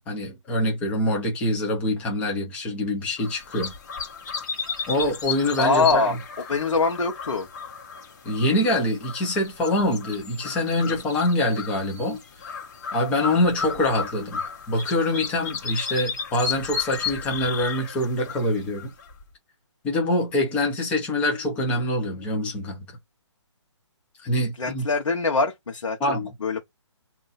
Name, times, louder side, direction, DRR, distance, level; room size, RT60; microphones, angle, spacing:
voice 1, 0.0-3.7 4.9-6.0 8.2-12.2 12.9-14.4 14.7-18.9 19.8-22.8 24.2-24.8 26.0-26.3, left 1 dB, 10° left, 0.8 m, -25 dB
sound 1, 3.2-19.2, left 6 dB, 35° left, 1.4 m, -34 dB
voice 2, 5.6-6.1 6.5-7.5 24.6-26.0 26.4-26.6, left 3 dB, 85° left, 1.1 m, -23 dB
2.8 x 2.6 x 3.9 m
hypercardioid pair, 170°, 16 cm